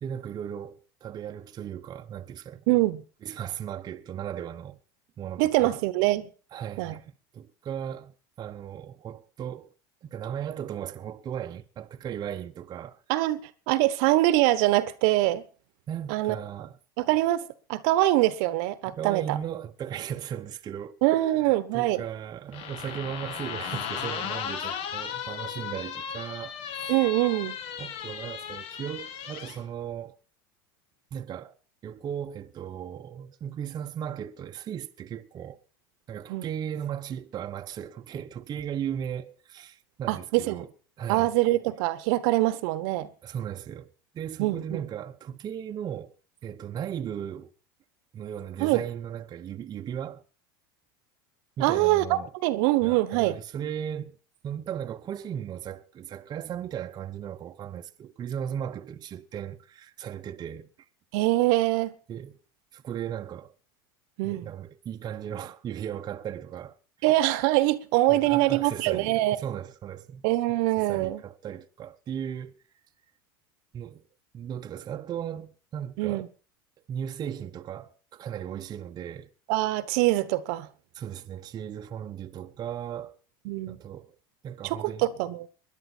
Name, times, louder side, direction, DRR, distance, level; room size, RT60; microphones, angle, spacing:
voice 1, 0.0-2.8 3.2-4.8 5.2-5.8 6.5-7.1 7.3-9.7 10.0-13.0 15.9-16.8 18.9-21.0 21.4-27.0 27.8-30.2 31.1-31.6 31.8-35.6 36.1-40.7 41.0-41.3 43.2-46.2 46.4-47.5 48.1-50.2 51.6-52.3 52.8-54.2 54.4-60.7 62.1-62.4 62.7-63.5 64.2-66.8 68.1-70.2 70.8-72.6 73.7-74.0 74.3-76.3 76.9-79.3 80.9-83.2 83.7-84.1 84.4-85.1, right 9 dB, 35° right, 0.9 m, -36 dB
voice 2, 2.7-3.0 5.4-6.3 6.8-7.0 13.1-15.4 16.1-16.4 17.0-19.4 21.0-22.0 26.9-27.6 36.3-36.5 40.1-40.6 41.1-43.1 44.4-44.8 48.6-48.8 51.6-53.4 61.1-61.9 64.2-64.4 67.0-69.4 70.2-71.2 76.0-76.3 79.5-80.7 83.4-83.8 84.6-85.5, right 17 dB, 65° right, 1.1 m, -24 dB
sound 1, 22.5-29.6, left 8 dB, 55° left, 1.7 m, -36 dB
20.5 x 11.0 x 4.4 m
hypercardioid pair, 100°, 12 cm